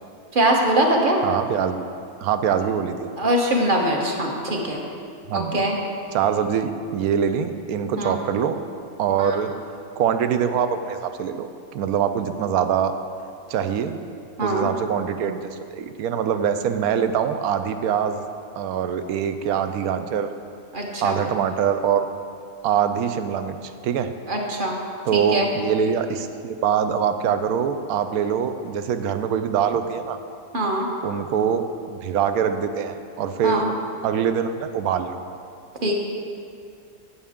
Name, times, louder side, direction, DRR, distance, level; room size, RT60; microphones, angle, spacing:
voice 1, 0.3-1.2 3.2-4.8 5.3-5.8 8.0-8.2 9.2-9.4 14.4-14.7 20.7-21.2 24.3-24.8 25.1-25.5 30.5-30.9 33.4-33.7 35.8-35.9, right 1 dB, 35° right, 0 dB, 1.3 m, -22 dB
voice 2, 1.2-1.9 2.2-3.1 5.3-5.6 6.1-8.6 9.0-9.5 10.0-11.5 11.7-12.9 13.5-14.0 14.4-15.4 15.7-18.2 18.6-20.3 21.0-22.1 22.6-24.1 25.0-30.2 31.0-31.6 31.9-33.6 34.0-35.2, right 8 dB, 75° right, 9 dB, 1.1 m, -23 dB
16.0 x 7.2 x 3.6 m, 2.4 s
omnidirectional pair, 1.6 m